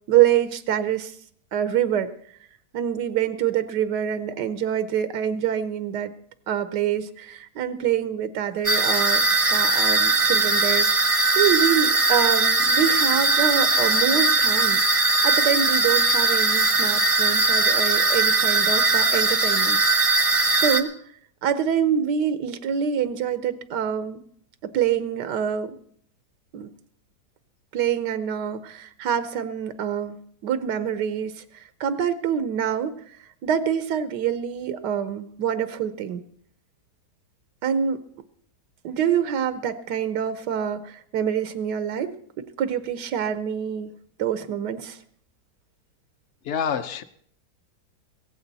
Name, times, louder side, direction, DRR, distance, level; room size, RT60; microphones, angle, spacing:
voice 1, 0.1-1.2 1.5-2.1 2.7-6.1 6.5-14.8 15.2-20.1 20.6-20.9 21.4-24.2 24.6-25.8 26.5-26.7 27.7-33.2 33.4-36.2 37.6-38.0 38.8-42.1 42.6-43.9 44.2-45.0, right 9 dB, 90° right, 12 dB, 1.4 m, -26 dB
sound 1, 8.6-20.8, right 3 dB, 35° right, 0.5 m, -20 dB
voice 2, 46.4-47.0, left 7 dB, 55° left, 12 dB, 0.8 m, -26 dB
16.5 x 15.0 x 4.0 m, 0.63 s
omnidirectional pair, 1.8 m